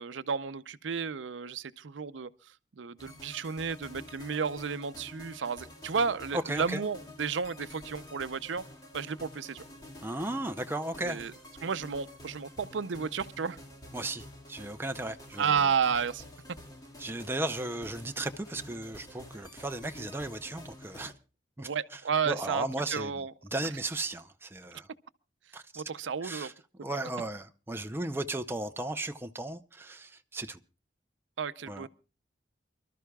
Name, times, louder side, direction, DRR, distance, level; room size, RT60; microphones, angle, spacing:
voice 1, 0.0-2.3 2.8-8.6 8.9-9.6 11.1-11.3 11.6-13.6 15.4-16.2 21.6-23.3 25.8-26.5 26.8-26.9 31.4-31.9, right 6 dB, 90° right, 0.6 m, -32 dB
sound 1, 3.0-21.1, left 1 dB, 20° left, 2.0 m, -49 dB
voice 2, 6.3-6.8 10.0-11.3 13.9-15.6 17.0-21.1 21.6-22.0 22.3-23.2 23.5-24.9 25.5-25.8 26.2-26.5 26.8-30.6 31.7-31.9, right 2 dB, 10° right, 0.6 m, -35 dB
28.5 x 12.5 x 2.3 m
head